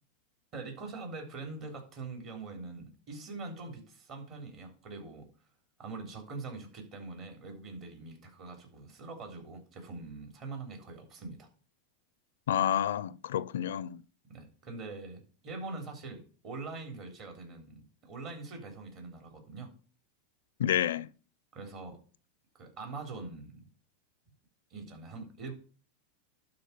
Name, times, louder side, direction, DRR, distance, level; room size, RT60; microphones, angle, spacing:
voice 1, 0.5-5.3 5.8-11.5 14.3-19.7 21.5-22.0 22.6-23.7 24.7-25.5, right 3 dB, 40° right, 3.5 m, -43 dB
voice 2, 12.5-14.0 20.6-21.1, left 10 dB, 90° left, 0.5 m, -29 dB
11.5 x 4.1 x 6.8 m
supercardioid pair, 135°, 0 cm